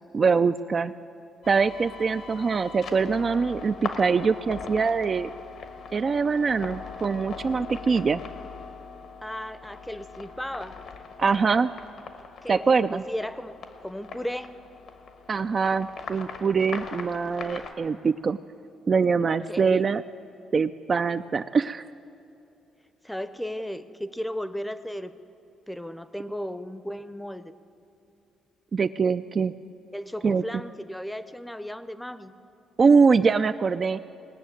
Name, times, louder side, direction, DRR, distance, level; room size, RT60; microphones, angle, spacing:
voice 1, 0.1-0.9 1.5-5.3 5.9-8.2 11.2-11.7 12.5-13.0 15.3-18.4 18.9-20.0 20.5-21.9 28.7-29.5 30.2-30.6 32.8-34.0, right 5 dB, 40° right, 10 dB, 0.3 m, -23 dB
sound 1, 1.4-17.7, left 5 dB, 70° left, 1.2 m, -41 dB
voice 2, 9.2-10.7 12.4-14.5 19.5-19.9 23.0-25.1 25.7-27.5 29.9-32.3, equal, 5° left, 13 dB, 0.6 m, -35 dB
19.0 x 6.5 x 9.0 m, 2.7 s
cardioid pair, 90°, 0 cm